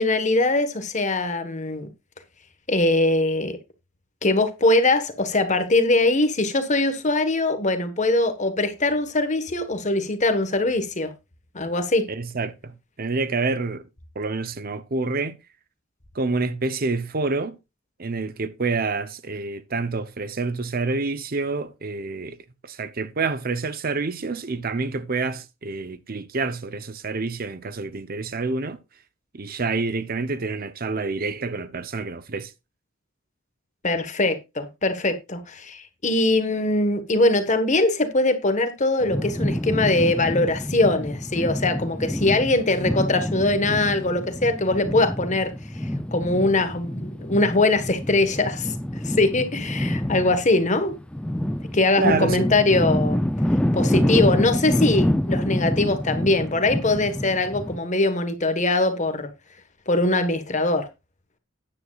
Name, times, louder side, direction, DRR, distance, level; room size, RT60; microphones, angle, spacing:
voice 1, 0.0-1.9 2.7-3.6 4.2-11.1 11.5-12.0 33.8-48.7 49.0-50.9 51.7-53.2 53.7-59.3 59.9-60.9, left 2 dB, 35° left, 1.4 m, -22 dB
voice 2, 12.1-13.8 14.2-15.4 16.1-17.6 18.0-22.4 22.6-28.8 29.3-32.5 52.0-52.4, right 3 dB, 45° right, 0.8 m, -27 dB
sound 1, 39.0-57.8, left 1 dB, 5° left, 0.5 m, -27 dB
13.0 x 9.9 x 2.4 m
head